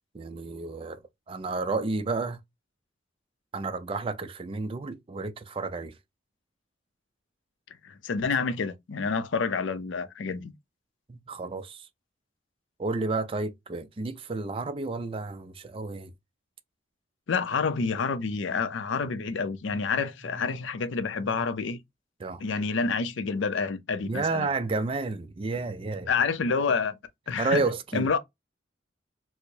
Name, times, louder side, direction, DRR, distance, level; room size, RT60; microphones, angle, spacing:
voice 1, 0.1-2.4 3.5-5.9 11.1-11.9 12.8-16.1 19.7-20.6 21.3-21.4 22.2-22.4 24.0-26.1 27.4-28.1, right 3 dB, 30° right, 0.4 m, -31 dB
voice 2, 7.8-10.5 17.3-21.8 22.4-24.5 26.1-27.0 27.3-27.6 27.9-28.2, left 5 dB, 80° left, 0.5 m, -28 dB
4.4 x 2.0 x 2.6 m
head